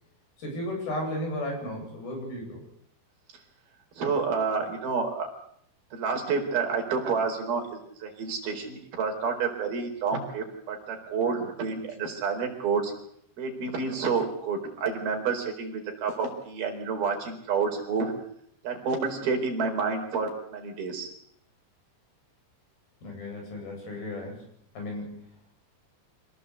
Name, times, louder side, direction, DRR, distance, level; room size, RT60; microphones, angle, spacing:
voice 1, 0.4-2.6 23.0-24.5 24.7-25.3, left 1 dB, 80° left, 1 dB, 10.0 m, -34 dB
voice 2, 4.0-5.3 5.9-12.9 13.4-18.1 18.6-21.1, right 5 dB, 85° right, 3 dB, 6.2 m, -29 dB
26.5 x 18.0 x 8.2 m, 0.69 s
omnidirectional pair, 4.2 m